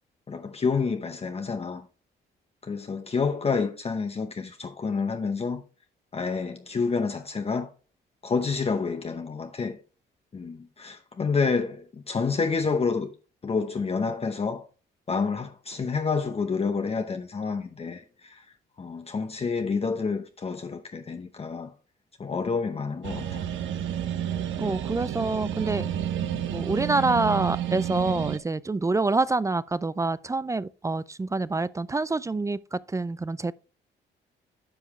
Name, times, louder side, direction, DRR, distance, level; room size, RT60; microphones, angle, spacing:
voice 1, 0.3-1.9 2.6-5.6 6.1-7.7 8.2-9.8 10.3-13.1 13.4-14.6 15.1-18.5 18.8-21.7 22.2-23.5 24.6-24.8, left 5 dB, 30° left, 0.8 m, -29 dB
sound 1, 23.0-28.4, right 10 dB, 75° right, 0.8 m, -30 dB
voice 2, 24.6-25.8 26.5-33.5, right 3 dB, 15° right, 0.3 m, -26 dB
9.9 x 5.5 x 3.1 m
cardioid pair, 90°, 20 cm